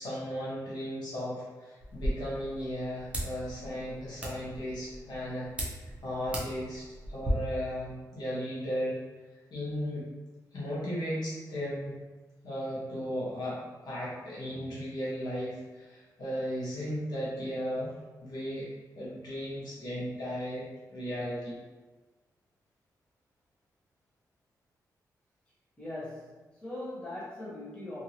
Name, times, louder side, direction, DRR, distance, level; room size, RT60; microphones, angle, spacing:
voice 1, 0.0-5.5 6.0-9.0 9.5-10.1 10.5-12.0 12.4-17.9 18.2-20.6 20.9-21.6, equal, 90° left, -7 dB, 1.1 m, -36 dB
sound 1, 1.8-7.3, equal, 20° right, 0.6 m, -38 dB
voice 2, 25.8-28.0, left 1 dB, 15° left, -9 dB, 1.1 m, -40 dB
2.8 x 2.7 x 2.8 m, 1.3 s
wide cardioid pair, 135°, 7 cm